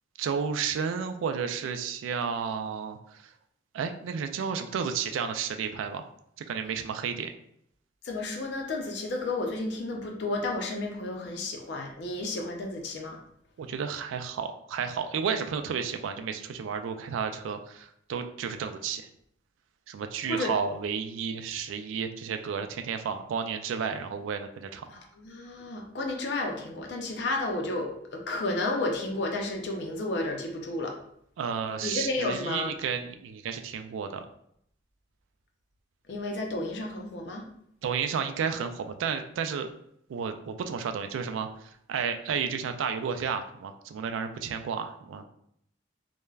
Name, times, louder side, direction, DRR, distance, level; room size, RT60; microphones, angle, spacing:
voice 1, 0.2-3.3 3.7-6.0 6.5-7.3 13.6-19.1 19.9-24.9 31.4-34.3 37.8-39.7 40.1-45.2, right 6 dB, 90° right, 8 dB, 0.3 m, -32 dB
voice 2, 8.0-13.2 20.3-20.5 24.9-30.9 31.8-32.7 36.1-37.4, left 2 dB, 60° left, 2 dB, 0.4 m, -32 dB
3.2 x 2.1 x 2.3 m, 0.71 s
head